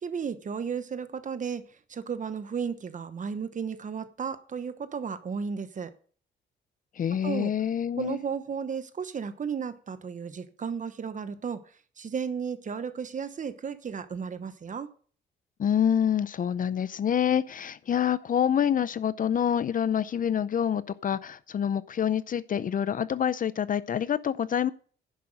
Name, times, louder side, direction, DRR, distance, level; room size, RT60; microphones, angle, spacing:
voice 1, 0.0-5.9 7.2-7.5 8.0-11.6 12.0-14.9, right 6 dB, 40° right, 1.0 m, -34 dB
voice 2, 7.0-8.2 15.6-24.7, left 9 dB, 45° left, 0.5 m, -27 dB
10.5 x 5.7 x 6.5 m
cardioid pair, 90°, 20 cm